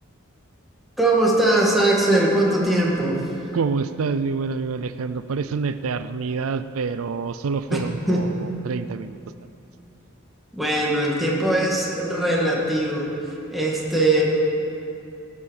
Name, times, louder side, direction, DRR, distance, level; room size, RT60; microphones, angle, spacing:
voice 1, 1.0-3.2 7.7-7.8 8.1-8.2 10.5-13.1 13.5-14.2, right 1 dB, ahead, -4 dB, 2.2 m, -20 dB
voice 2, 3.5-9.2, right 4 dB, 90° right, 12 dB, 0.5 m, -27 dB
16.5 x 9.6 x 6.6 m, 2.7 s
head